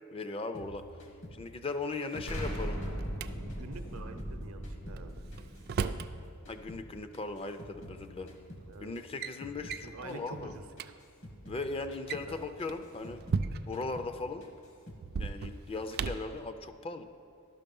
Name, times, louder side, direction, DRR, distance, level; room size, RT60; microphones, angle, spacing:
voice 1, 0.1-0.8 1.3-2.8 5.8-5.9 6.5-8.3 8.8-10.5 11.5-13.2 13.6-14.5 15.2-17.0, left 3 dB, 25° left, 9 dB, 0.4 m, -38 dB
sound 1, 0.5-3.2 3.5-6.2 6.5-9.8 10.1-10.5 10.8-13.5 13.7-14.2 14.4-15.1, equal, 65° left, 1.3 m, -50 dB
Drawer open or close, 1.9-3.3 5.0-6.1 7.4-7.5 8.3-8.6 8.9-9.3 9.7-9.9 10.4-10.5 10.7-10.9 11.9-13.9 15.0-16.3, right 5 dB, 45° right, 0.3 m, -36 dB
Explosion, 2.3-7.1, equal, 80° left, 1.8 m, -39 dB
voice 2, 3.5-5.2 8.7-8.9 9.8-10.9 12.3-12.4, right 3 dB, 80° right, 8 dB, 0.7 m, -47 dB
11.5 x 6.0 x 5.3 m, 2.4 s
head